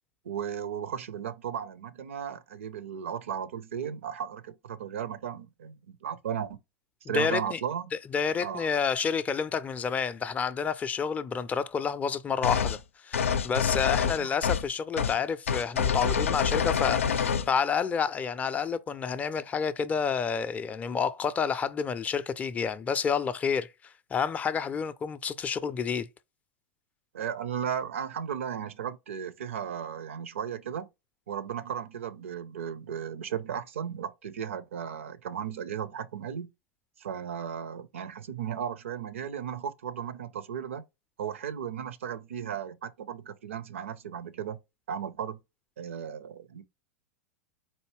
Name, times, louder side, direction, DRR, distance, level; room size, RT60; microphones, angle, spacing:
voice 1, 0.2-6.6 7.1-7.9 8.4-8.7 14.0-14.3 27.1-30.9 31.3-36.5 37.0-40.8 41.2-44.6 44.9-45.4 45.8-46.6, right 8 dB, 70° right, 0.5 m, -35 dB
voice 2, 7.1-7.6 7.9-26.1, left 6 dB, 20° left, 0.4 m, -29 dB
sound 1, 12.4-12.8 13.1-14.7 15.0-15.2 15.5-17.5, left 7 dB, 75° left, 0.5 m, -27 dB
4.3 x 2.7 x 3.1 m
figure-of-eight pair, 95°, 7 cm